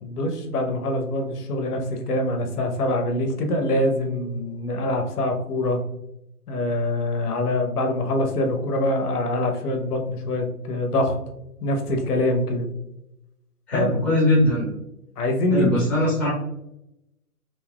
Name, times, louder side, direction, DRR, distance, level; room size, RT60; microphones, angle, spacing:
voice 1, 0.0-5.8 6.5-11.2 11.6-12.7 13.7-13.9 15.2-15.7 16.0-16.3, left 1 dB, 75° left, 4 dB, 0.9 m, -24 dB
voice 2, 13.7-14.7 15.5-16.3, left 1 dB, 5° left, -8 dB, 0.9 m, -20 dB
3.9 x 2.6 x 2.3 m, 0.86 s
hypercardioid pair, 155°, 46 cm